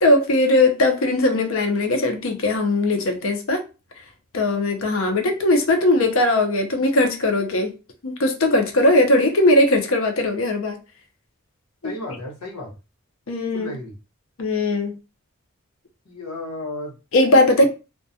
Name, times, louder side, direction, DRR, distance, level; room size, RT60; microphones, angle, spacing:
voice 1, 0.0-3.6 4.3-7.7 8.0-10.8 11.8-11.9 13.3-13.7 14.4-15.0 17.1-17.7, left 1 dB, 65° left, 0.6 m, -19 dB
voice 2, 11.8-12.7 13.5-13.9 16.0-17.0, left 2 dB, 90° left, 1.0 m, -33 dB
2.3 x 2.2 x 2.7 m
head